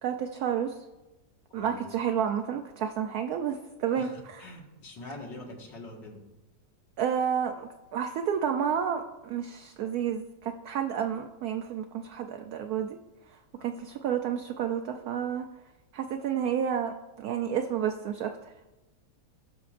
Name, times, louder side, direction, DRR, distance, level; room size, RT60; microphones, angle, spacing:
voice 1, 0.0-0.8 1.5-4.4 7.0-13.0 13.3-15.5 15.9-18.5, right 8 dB, 70° right, 5 dB, 1.0 m, -30 dB
voice 2, 4.0-6.2 13.6-13.7, left 2 dB, 85° left, -1 dB, 2.4 m, -44 dB
18.0 x 6.1 x 2.5 m, 1.1 s
omnidirectional pair, 1.9 m